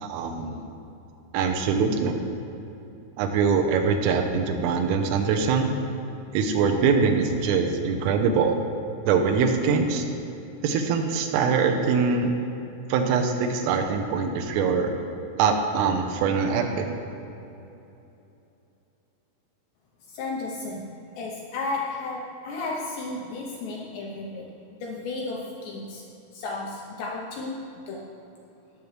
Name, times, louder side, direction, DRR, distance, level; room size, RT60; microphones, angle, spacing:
voice 1, 0.0-0.6 1.3-2.2 3.2-5.7 6.3-8.6 9.1-10.1 10.6-12.4 12.9-14.9 15.4-17.0, right 5 dB, 85° right, 4 dB, 3.4 m, -23 dB
voice 2, 20.1-26.1 26.3-28.2, left 3 dB, 80° left, -2 dB, 2.6 m, -34 dB
18.5 x 7.0 x 3.2 m, 2.9 s
omnidirectional pair, 5.8 m